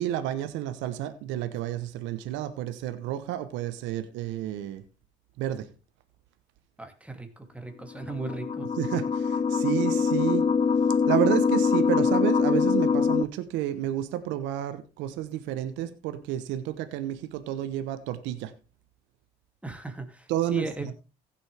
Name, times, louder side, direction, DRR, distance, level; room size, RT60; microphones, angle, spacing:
voice 1, 0.0-4.8 5.4-5.7 8.8-10.4 11.1-18.5 20.3-20.9, right 12 dB, 75° right, 1.1 m, -30 dB
voice 2, 6.8-8.7 19.6-20.9, right 2 dB, 5° right, 2.7 m, -37 dB
sound 1, 8.0-13.2, left 5 dB, 35° left, 0.7 m, -24 dB
15.5 x 7.5 x 3.5 m
supercardioid pair, 65°, 19 cm